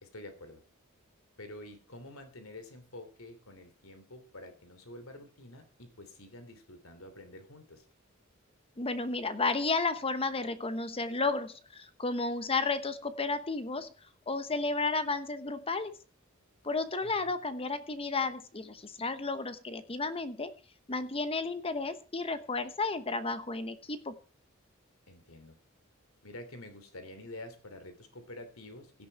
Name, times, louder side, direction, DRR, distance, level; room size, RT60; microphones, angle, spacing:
voice 1, 0.0-0.6 1.4-7.8 17.0-17.3 25.1-25.6 26.2-29.1, left 1 dB, 80° left, 9 dB, 3.0 m, -48 dB
voice 2, 8.8-13.9 14.3-15.9 16.6-20.5 20.9-24.1, left 3 dB, 25° left, 12 dB, 1.0 m, -32 dB
17.0 x 9.9 x 4.6 m, 0.35 s
head